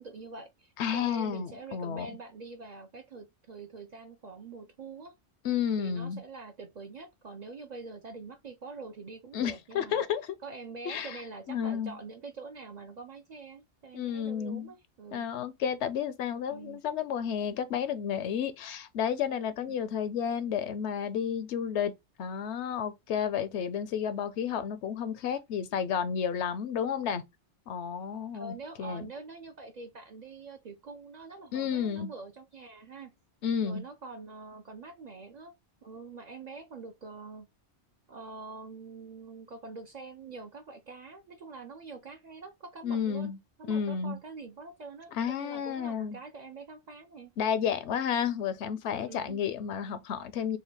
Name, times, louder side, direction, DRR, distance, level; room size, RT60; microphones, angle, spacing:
voice 1, 0.0-5.1 5.8-10.0 10.4-15.3 16.5-16.8 19.7-19.8 28.3-33.1 33.6-35.5 35.8-37.5 38.1-43.3 43.6-47.3 49.1-49.4, right 4 dB, 55° right, 0.5 m, -45 dB
voice 2, 0.8-2.1 5.4-6.2 9.3-10.3 10.9-11.2 11.5-12.0 13.9-14.7 15.1-21.9 22.2-27.2 27.7-29.1 31.5-32.1 33.4-33.8 42.8-43.4 43.7-44.2 45.1-46.2 47.4-50.6, left 8 dB, 80° left, 0.9 m, -31 dB
3.9 x 2.2 x 3.2 m
omnidirectional pair, 1.1 m